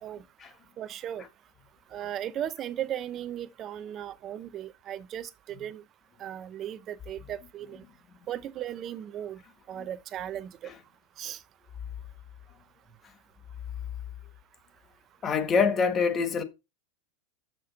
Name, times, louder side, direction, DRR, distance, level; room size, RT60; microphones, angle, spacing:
voice 1, 0.8-1.2 1.9-5.8 6.2-7.8 8.3-9.4 9.7-10.6 11.2-11.4, right 11 dB, 35° right, 0.6 m, -36 dB
voice 2, 15.2-16.4, left 5 dB, 25° left, 1.1 m, -25 dB
6.8 x 6.3 x 4.0 m
supercardioid pair, 130°, 0 cm